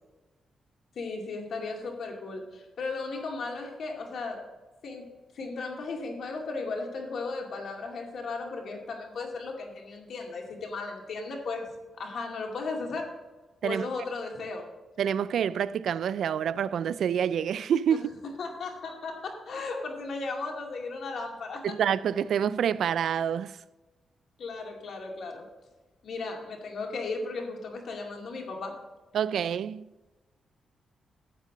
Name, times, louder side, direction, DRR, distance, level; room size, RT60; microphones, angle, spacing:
voice 1, 1.0-4.4 4.8-5.1 5.3-11.6 12.0-13.1 13.6-14.7 17.9-18.0 18.4-21.8 24.4-25.4 26.0-28.7, left 3 dB, 70° left, 2.2 m, -35 dB
voice 2, 15.0-18.1 21.6-23.6 29.1-29.9, right 8 dB, 75° right, 0.3 m, -27 dB
11.5 x 8.2 x 3.9 m
cardioid pair, 105°, 0 cm